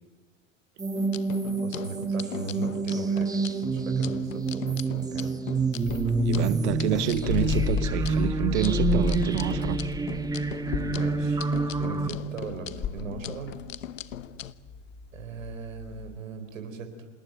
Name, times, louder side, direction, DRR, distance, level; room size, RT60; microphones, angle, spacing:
sound 1, 0.8-12.1, right 4 dB, 10° right, 1.4 m, -28 dB
sound 2, 0.9-14.5, left 10 dB, 85° left, 1.1 m, -40 dB
voice 1, 1.6-5.4 10.7-13.6 15.1-17.1, right 4 dB, 85° right, 4.1 m, -39 dB
sound 3, 5.8-16.2, left 6 dB, 30° left, 2.1 m, -33 dB
voice 2, 6.2-9.8, right 14 dB, 60° right, 1.1 m, -28 dB
27.0 x 20.0 x 9.2 m
hypercardioid pair, 110°, 38 cm